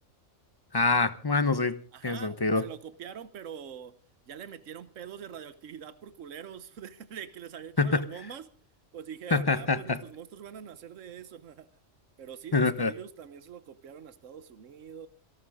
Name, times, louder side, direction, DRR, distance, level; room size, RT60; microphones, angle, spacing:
voice 1, 0.7-1.7 2.0-2.7 7.8-8.1 9.3-10.0 12.5-12.9, left 3 dB, 20° left, 0.8 m, -25 dB
voice 2, 1.9-3.9 4.3-8.5 8.9-11.7 12.2-15.1, right 8 dB, 75° right, 1.3 m, -44 dB
28.0 x 12.0 x 3.7 m
omnidirectional pair, 1.3 m